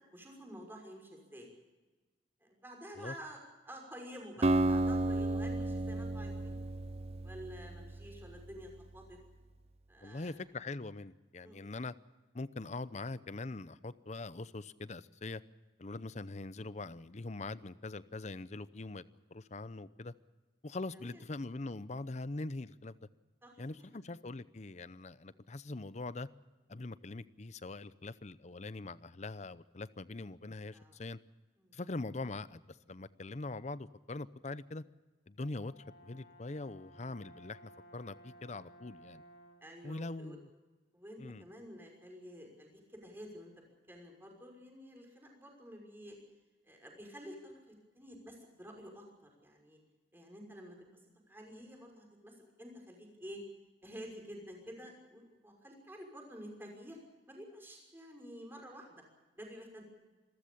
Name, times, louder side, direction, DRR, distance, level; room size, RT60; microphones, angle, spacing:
voice 1, 0.1-1.5 2.4-3.4 3.6-6.6 7.2-9.2 9.9-10.3 11.4-11.6 20.9-21.2 23.4-23.9 30.7-31.0 31.6-31.8 39.6-40.4 40.9-43.5 43.9-46.2 46.6-49.0 49.4-49.8 50.1-50.8 51.3-53.4 53.8-57.0 57.3-59.0 59.3-59.9, equal, 10° right, 6.0 m, -50 dB
Acoustic guitar, 4.4-8.5, right 2 dB, 35° right, 0.6 m, -33 dB
voice 2, 10.0-11.9 12.3-15.4 15.8-19.0 19.3-20.1 20.6-23.1 23.6-26.3 26.7-31.2 31.7-34.8 35.3-35.7 36.0-39.2 39.8-40.5 41.2-41.4, left 2 dB, 40° left, 0.7 m, -42 dB
Brass instrument, 35.4-39.8, equal, 70° left, 3.2 m, -58 dB
27.0 x 14.0 x 8.6 m
head